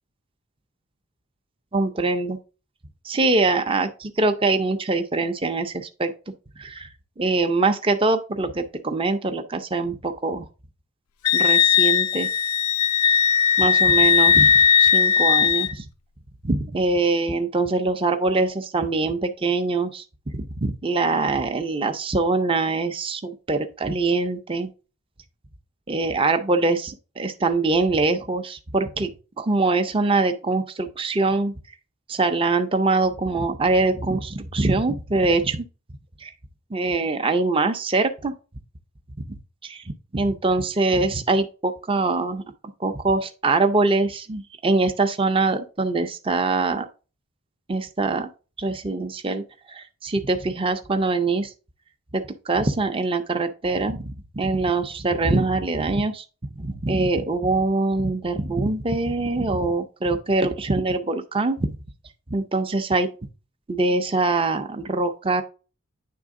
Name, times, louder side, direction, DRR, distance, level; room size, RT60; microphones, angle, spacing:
voice 1, 1.7-2.4 3.0-6.9 7.2-10.5 11.3-12.3 13.6-15.8 16.4-20.0 20.3-24.7 25.9-29.1 29.4-31.5 32.1-35.7 36.2-36.3 36.7-38.3 39.3-39.4 39.6-39.8 40.1-42.4 42.8-46.9 47.7-48.3 48.6-51.5 52.1-56.2 56.6-61.8 62.3-63.1 63.7-65.4, right 3 dB, 25° right, 0.5 m, -23 dB
Wind instrument woodwind instrument, 11.2-15.7, left 7 dB, 90° left, 0.4 m, -18 dB
9.3 x 3.5 x 3.6 m
head